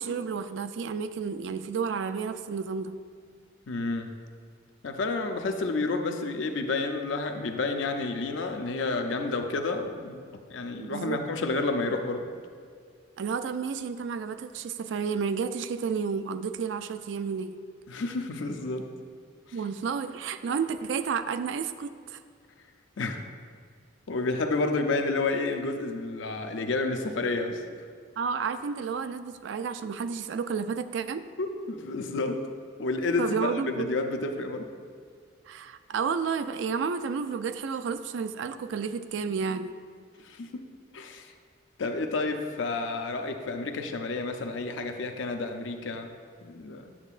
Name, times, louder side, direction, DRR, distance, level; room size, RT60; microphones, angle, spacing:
voice 1, 0.0-3.0 10.8-11.2 13.2-17.6 19.5-22.2 28.2-31.3 33.2-33.9 35.5-39.8, right 6 dB, 75° right, 11 dB, 0.3 m, -31 dB
voice 2, 3.7-4.1 4.8-10.2 10.5-12.3 17.9-18.9 23.0-23.2 24.1-27.6 31.4-32.4 32.8-34.7 40.2-40.6 40.9-41.3 41.8-46.1 46.4-46.9, left 3 dB, 80° left, 5 dB, 0.5 m, -30 dB
8.5 x 7.0 x 2.4 m, 2.1 s
head